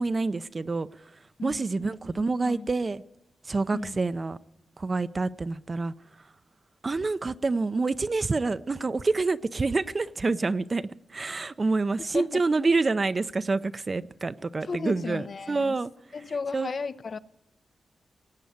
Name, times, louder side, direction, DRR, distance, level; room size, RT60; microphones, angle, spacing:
voice 1, 0.0-3.0 3.4-4.4 4.8-5.9 6.8-15.9 16.5-16.7, right 3 dB, 40° right, 0.5 m, -27 dB
voice 2, 1.4-1.9 2.2-2.7 3.7-4.0 12.1-12.4 14.7-15.8 16.1-17.2, left 4 dB, 55° left, 0.5 m, -34 dB
18.0 x 8.3 x 8.0 m
cardioid pair, 85°, 0 cm